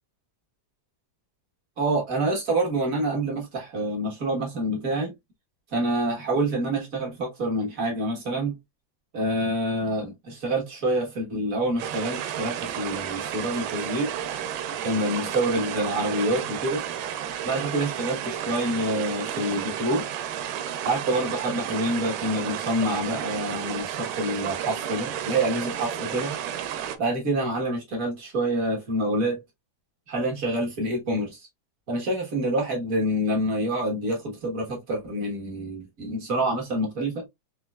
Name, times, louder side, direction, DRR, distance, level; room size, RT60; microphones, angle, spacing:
voice 1, 1.8-5.1 5.7-8.5 9.1-14.1 14.8-16.8 17.4-20.1 20.8-26.4 27.0-29.4 30.1-31.5 31.9-37.3, right 1 dB, 70° right, 0.8 m, -27 dB
sound 1, 11.8-27.0, right 10 dB, 85° right, 2.3 m, -32 dB
5.5 x 3.1 x 2.3 m
omnidirectional pair, 3.7 m